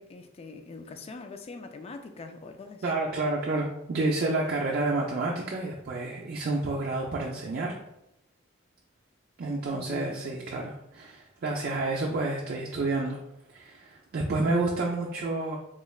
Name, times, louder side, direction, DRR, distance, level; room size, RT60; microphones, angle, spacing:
voice 1, 0.0-2.9 9.7-10.2, left 3 dB, 30° left, 7 dB, 0.3 m, -43 dB
voice 2, 2.8-7.8 9.4-13.2 13.5-15.6, right 2 dB, 50° right, -2 dB, 0.4 m, -29 dB
3.6 x 3.2 x 2.3 m, 0.81 s
head